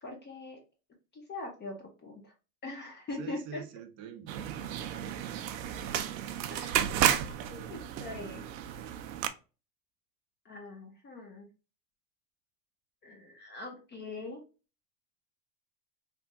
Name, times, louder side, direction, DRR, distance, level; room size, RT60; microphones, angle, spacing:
voice 1, 0.0-0.6 1.1-2.3 2.6-3.6 6.5-6.9 7.2-8.4 10.4-11.5 13.0-14.4, left 2 dB, 20° left, 0.7 m, -42 dB
voice 2, 3.1-5.3, right 8 dB, 35° right, 0.6 m, -47 dB
sound 1, 4.3-9.3, right 10 dB, 80° right, 0.6 m, -32 dB
3.4 x 2.1 x 2.6 m
hypercardioid pair, 105°, 49 cm